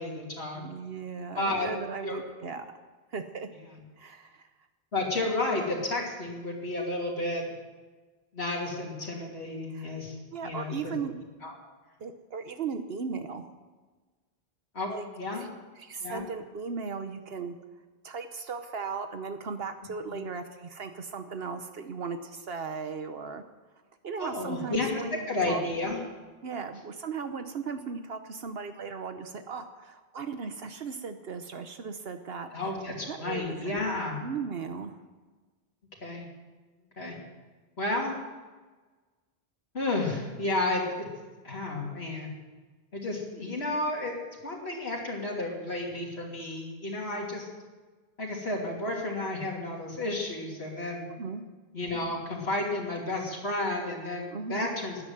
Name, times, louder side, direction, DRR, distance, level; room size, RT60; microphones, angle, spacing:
voice 1, 0.0-0.6 1.4-1.7 2.0-2.2 4.9-7.4 8.3-11.0 11.4-11.5 14.7-14.9 15.2-15.4 16.0-16.2 20.1-20.2 24.2-26.0 32.5-34.2 36.0-36.3 37.0-37.2 37.8-38.1 39.7-41.1 41.4-42.3 42.9-44.1 44.4-47.5 48.2-51.0 51.7-55.0, left 2 dB, 85° left, -2 dB, 3.1 m, -32 dB
voice 2, 0.5-2.7 3.1-3.5 4.0-4.5 9.7-9.9 10.3-11.1 12.0-13.5 14.9-15.0 15.3-15.5 15.8-17.6 18.0-23.4 24.0-25.6 26.4-32.7 33.0-33.8 34.2-35.0 51.1-51.4 54.3-54.7, right 5 dB, 70° right, 8 dB, 1.1 m, -37 dB
13.0 x 10.0 x 9.1 m, 1.3 s
omnidirectional pair, 1.0 m